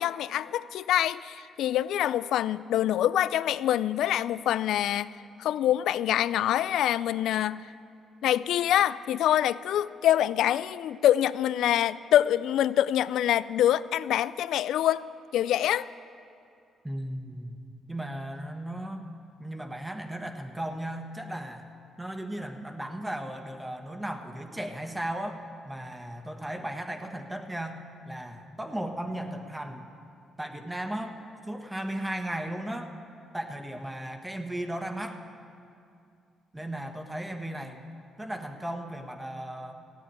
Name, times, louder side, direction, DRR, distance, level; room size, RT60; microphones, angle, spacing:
voice 1, 0.0-5.1 5.4-7.7 8.2-15.9, left 11 dB, 80° left, 17 dB, 0.3 m, -25 dB
voice 2, 16.8-17.6 17.9-19.0 19.4-21.6 22.0-29.8 30.4-31.1 31.5-32.9 33.3-35.2 36.5-37.8 38.2-39.7, right 1 dB, 10° right, 5 dB, 1.3 m, -36 dB
14.5 x 8.8 x 8.8 m, 2.4 s
cardioid pair, 85°, 0 cm